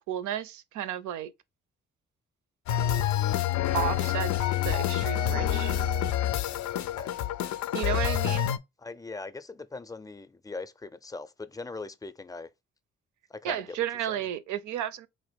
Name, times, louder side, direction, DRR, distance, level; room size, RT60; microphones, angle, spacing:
voice 1, 0.1-1.3 3.7-5.8 7.7-8.5 13.4-15.1, right 11 dB, 75° right, 0.5 m, -33 dB
sound 1, 2.7-8.6, left 11 dB, 70° left, 0.5 m, -27 dB
voice 2, 6.7-7.1 8.8-12.5 13.3-13.8 14.1-14.2, left 3 dB, 10° left, 0.5 m, -40 dB
3.8 x 2.6 x 3.4 m
supercardioid pair, 50°, 30 cm